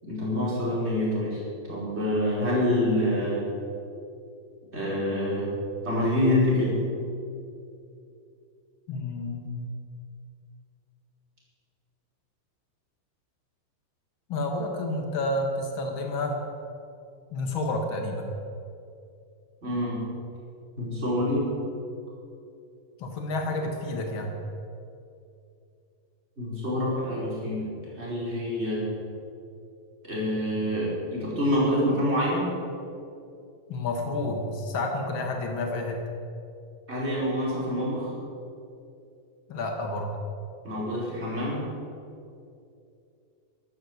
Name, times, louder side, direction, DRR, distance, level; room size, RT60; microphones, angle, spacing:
voice 1, 0.0-1.4 1.7-3.4 4.7-5.5 5.8-6.8 19.6-20.0 20.8-21.4 26.4-27.7 28.0-28.8 30.0-32.5 36.9-38.1 40.6-41.6, left 1 dB, 15° right, -6 dB, 5.0 m, -26 dB
voice 2, 8.9-9.7 14.3-16.4 17.3-18.3 23.0-24.3 33.7-36.0 39.5-40.1, left 2 dB, 60° left, 2 dB, 1.3 m, -30 dB
12.5 x 12.5 x 8.0 m, 2.6 s
omnidirectional pair, 4.9 m